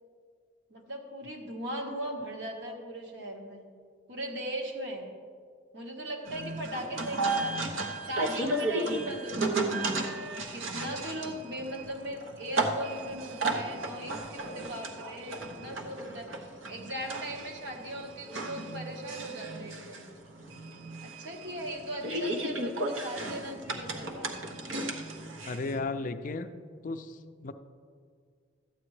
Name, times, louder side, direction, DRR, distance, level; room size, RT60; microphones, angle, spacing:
voice 1, 0.7-3.7 4.1-5.1 5.7-7.7 8.0-10.0 10.5-20.1 21.0-24.6, right 1 dB, 60° right, 1 dB, 1.4 m, -39 dB
sound 1, 6.3-25.8, right 2 dB, 85° right, 1.0 m, -34 dB
voice 2, 25.4-26.5 26.8-27.5, left 3 dB, 40° left, 10 dB, 0.4 m, -34 dB
13.0 x 8.7 x 3.2 m, 2.1 s
head